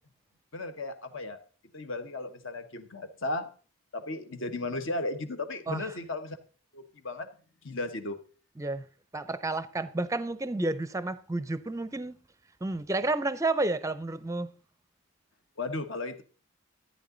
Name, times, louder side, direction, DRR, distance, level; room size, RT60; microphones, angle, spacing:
voice 1, 0.5-1.4 1.7-3.5 3.9-6.4 6.7-7.3 7.6-8.2 15.6-16.2, left 2 dB, 60° left, 1.3 m, -35 dB
voice 2, 9.1-12.1 12.6-14.5, right 2 dB, 15° right, 0.5 m, -31 dB
14.0 x 9.4 x 3.9 m
head